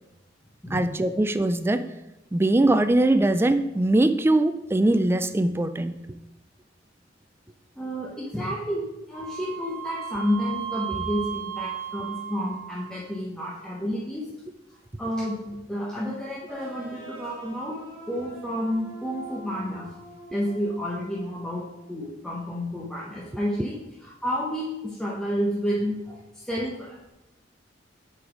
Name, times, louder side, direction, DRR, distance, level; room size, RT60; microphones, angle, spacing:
voice 1, 0.7-1.9 2.3-5.9, right 2 dB, 15° right, 11 dB, 0.3 m, -21 dB
voice 2, 7.8-14.3 15.0-17.8 18.1-19.9 20.3-27.1, equal, 5° left, -6 dB, 0.9 m, -30 dB
Wind instrument woodwind instrument, 9.1-13.0, right 11 dB, 65° right, 1.1 m, -35 dB
sound 1, 16.5-22.0, right 2 dB, 30° right, 2.0 m, -45 dB
7.5 x 4.0 x 4.9 m, 0.97 s
head